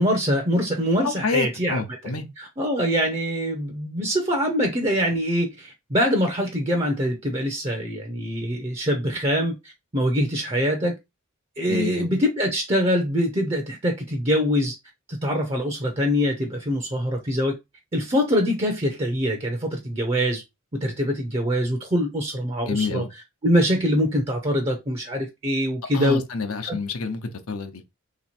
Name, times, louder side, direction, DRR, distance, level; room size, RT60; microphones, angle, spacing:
voice 1, 0.0-1.8 2.0-9.6 9.9-11.0 11.6-14.7 15.1-17.6 17.9-20.4 20.7-23.0 23.4-26.2 26.6-26.8, equal, 25° right, 0.6 m, -24 dB
voice 2, 1.0-2.3 11.7-12.1 22.7-23.1 25.9-27.8, left 4 dB, 75° left, 0.8 m, -28 dB
3.3 x 3.0 x 4.3 m
head